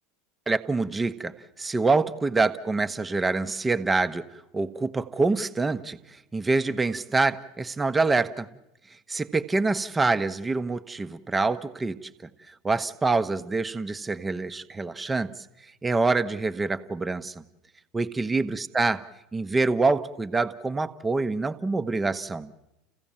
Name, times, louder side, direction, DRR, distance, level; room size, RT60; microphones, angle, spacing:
voice 1, 0.5-4.3 4.5-6.0 6.3-8.5 9.1-12.1 12.5-15.4 15.8-17.4 17.9-19.0 19.3-22.5, right 3 dB, 15° right, 10 dB, 1.0 m, -26 dB
30.0 x 15.5 x 7.3 m, 0.95 s
hypercardioid pair, 80°, 0 cm